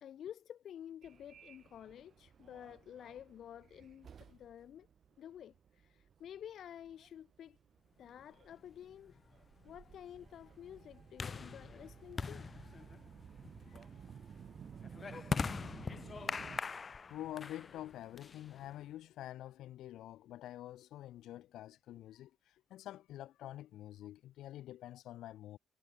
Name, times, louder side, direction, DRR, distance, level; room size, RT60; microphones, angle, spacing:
voice 1, 0.0-4.9 5.2-7.6 8.0-9.2 9.6-12.5 13.9-14.1, left 10 dB, 65° left, 1.5 m, -51 dB
Subway metro underground, 1.0-16.6, right 7 dB, 55° right, 5.1 m, -56 dB
sound 1, 8.5-18.9, left 5 dB, 35° left, 1.6 m, -43 dB
voice 2, 13.4-13.8 16.2-16.3 17.1-25.6, left 13 dB, 85° left, 2.4 m, -48 dB
cardioid pair, 90°, 0 cm